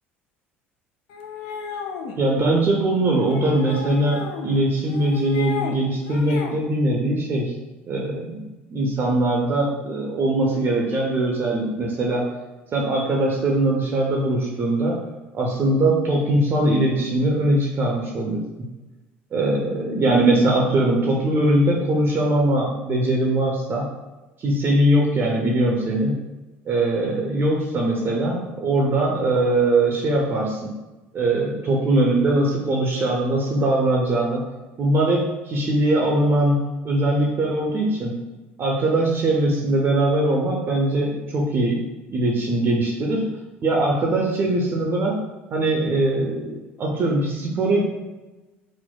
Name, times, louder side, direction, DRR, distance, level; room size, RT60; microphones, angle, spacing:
sound 1, 1.1-2.2 3.2-4.5 4.9-5.8 6.1-6.6, left 6 dB, 60° left, 0.4 m, -33 dB
voice 1, 2.2-7.5 7.9-12.2 12.7-15.1 15.3-18.4 19.3-23.9 24.4-26.2 26.7-30.7 31.1-34.4 34.8-38.1 38.6-41.8 42.1-43.3 43.6-45.2 45.5-47.8, right 1 dB, 35° right, -2 dB, 0.5 m, -21 dB
4.4 x 2.0 x 2.2 m, 1.1 s
figure-of-eight pair, 60°, 7 cm